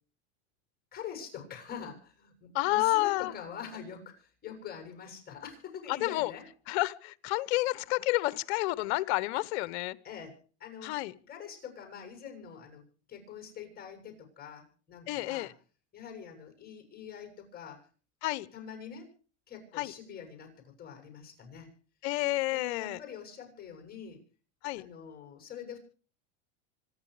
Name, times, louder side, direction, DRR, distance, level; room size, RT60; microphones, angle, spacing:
voice 1, 0.9-6.5 10.0-15.5 15.9-17.9 18.5-19.1 19.5-21.7 22.5-24.2 24.8-25.8, left 7 dB, 25° left, 7.1 m, -45 dB
voice 2, 2.5-3.3 5.9-6.3 6.7-10.0 10.8-11.1 15.1-15.5 18.2-18.5 19.8-19.9 22.0-23.0 24.6-24.9, left 19 dB, 65° left, 1.0 m, -30 dB
26.0 x 10.5 x 5.0 m
supercardioid pair, 130°, 35 cm